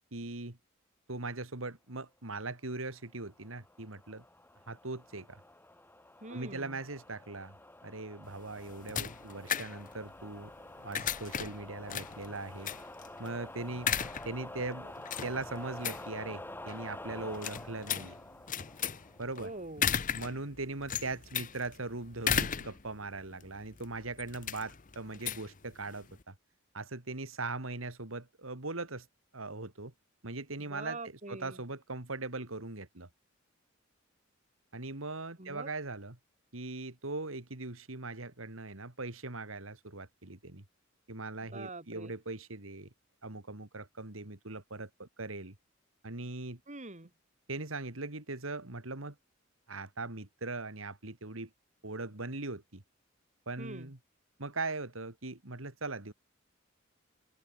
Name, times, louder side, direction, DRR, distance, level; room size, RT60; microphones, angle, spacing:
voice 1, 0.1-0.6 1.1-4.2 4.7-5.4 6.3-7.6 7.8-10.5 10.8-12.7 13.2-13.9 14.2-18.2 19.2-19.5 20.1-26.3 26.7-29.1 29.3-29.9 30.2-31.0 31.3-33.1 34.7-36.2 36.5-40.6 41.1-42.9 43.2-45.5 46.0-46.6 47.5-49.2 49.7-51.5 51.8-52.8 53.5-54.0 54.4-56.1, right 3 dB, 80° right, 2.8 m, -40 dB
sound 1, 3.1-19.6, left 1 dB, 10° left, 6.2 m, -48 dB
voice 2, 6.2-6.8 19.4-19.9 30.6-31.6 35.4-35.7 41.4-42.1 46.7-47.1 53.6-53.9, right 2 dB, 35° right, 3.7 m, -44 dB
sound 2, 8.2-26.2, left 8 dB, 40° left, 0.9 m, -37 dB
open air
head